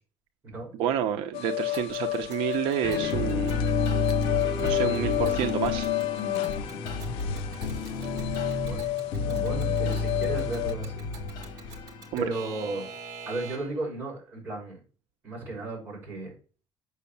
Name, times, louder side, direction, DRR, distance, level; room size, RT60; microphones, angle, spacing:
voice 1, 0.7-3.6 4.6-5.9 12.1-12.3, right 10 dB, 80° right, 6 dB, 0.9 m, -29 dB
sound 1, 1.3-10.7, left 17 dB, 85° left, 0.4 m, -31 dB
Alarm / Clock, 1.7-13.9, right 5 dB, 45° right, 2.4 m, -48 dB
sound 2, 2.8-12.5, left 4 dB, 55° left, 2.1 m, -30 dB
voice 2, 8.7-11.0 11.4-11.7 12.2-12.9 13.2-14.8 15.2-16.3, right 2 dB, 20° right, -3 dB, 6.5 m, -35 dB
8.3 x 6.4 x 7.1 m, 0.39 s
cardioid pair, 170°, 9 cm